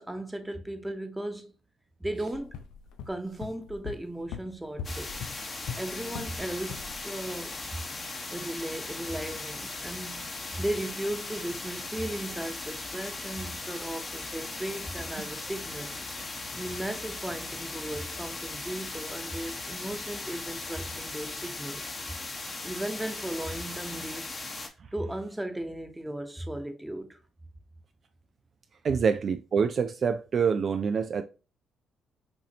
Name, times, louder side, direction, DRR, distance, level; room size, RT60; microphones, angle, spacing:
voice 1, 0.0-1.5 2.0-2.6 3.1-5.3 5.7-7.5 8.3-15.9 16.5-21.8 22.6-24.5 24.9-27.2, right 1 dB, 10° right, 1.0 m, -36 dB
sound 1, 2.3-6.4 6.7-7.0, left 8 dB, 80° left, 0.5 m, -41 dB
sound 2, 4.8-24.7, left 3 dB, 40° left, 1.2 m, -38 dB
voice 2, 28.8-31.2, right 6 dB, 55° right, 0.4 m, -26 dB
5.9 x 2.7 x 2.8 m
hypercardioid pair, 55°, 0 cm